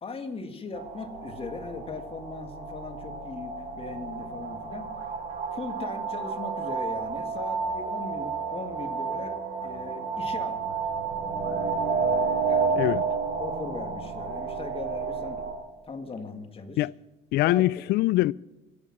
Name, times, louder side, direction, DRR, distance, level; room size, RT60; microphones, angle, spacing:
voice 1, 0.0-4.9 5.5-10.8 12.5-13.0 13.4-15.4 15.9-16.9 17.4-17.7, left 4 dB, 35° left, 1.8 m, -39 dB
sound 1, 0.7-15.5, right 5 dB, 45° right, 5.2 m, -31 dB
voice 2, 17.3-18.3, left 17 dB, 75° left, 0.4 m, -23 dB
25.0 x 8.7 x 6.1 m
cardioid pair, 110°, 17 cm